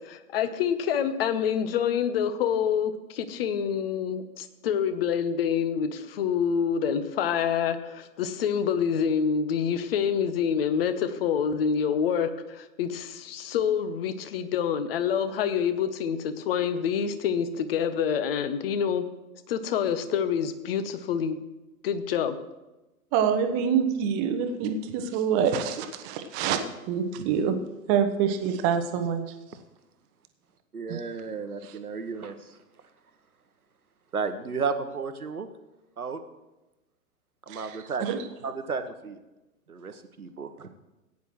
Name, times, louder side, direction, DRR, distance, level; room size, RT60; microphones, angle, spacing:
voice 1, 0.0-19.1 19.5-21.4 21.8-22.4, left 7 dB, 40° left, 11 dB, 0.9 m, -27 dB
voice 2, 23.1-26.6 26.9-27.6 27.9-29.3 30.9-31.0 37.5-38.2, right 7 dB, 25° right, 8 dB, 0.8 m, -26 dB
voice 3, 30.7-32.6 34.1-35.5 36.0-36.2 37.5-39.2 39.7-40.7, right 5 dB, 80° right, 10 dB, 1.1 m, -33 dB
16.5 x 9.5 x 3.1 m, 1.0 s
figure-of-eight pair, 110°, 43 cm